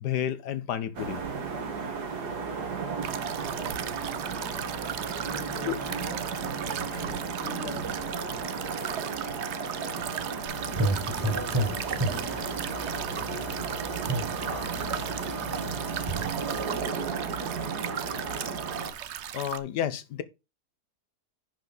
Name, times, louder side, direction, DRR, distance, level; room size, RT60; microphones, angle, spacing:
voice 1, 0.0-1.2 5.6-5.7 19.3-20.2, left 10 dB, 90° left, 1.5 m, -30 dB
sound 1, 0.9-18.9, right 5 dB, 75° right, 2.2 m, -34 dB
sound 2, 3.0-19.6, right 9 dB, 55° right, 0.8 m, -37 dB
voice 2, 5.2-6.2 6.6-12.5 13.1-13.9 14.3-15.7 16.3-17.5, left 3 dB, 40° left, 2.3 m, -45 dB
sound 3, 10.5-16.8, right 1 dB, 15° right, 1.7 m, -33 dB
10.5 x 5.3 x 4.0 m
omnidirectional pair, 1.7 m